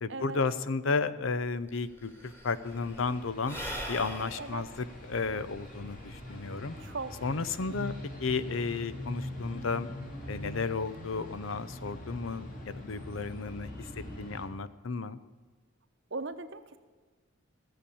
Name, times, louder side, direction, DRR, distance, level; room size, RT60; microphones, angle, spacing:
voice 1, 0.0-3.6 3.9-6.8 7.2-7.9 8.2-9.9 10.3-15.2, left 4 dB, 70° left, 14 dB, 0.6 m, -33 dB
Sigh / Breathing, 1.4-1.5 1.7-6.4, equal, 10° left, 1.8 m, -42 dB
sound 1, 2.6-14.5, left 1 dB, 40° left, 2.8 m, -43 dB
voice 2, 6.8-7.3 16.1-16.8, right 3 dB, 60° right, 10 dB, 0.9 m, -38 dB
15.0 x 7.1 x 8.4 m, 1.4 s
head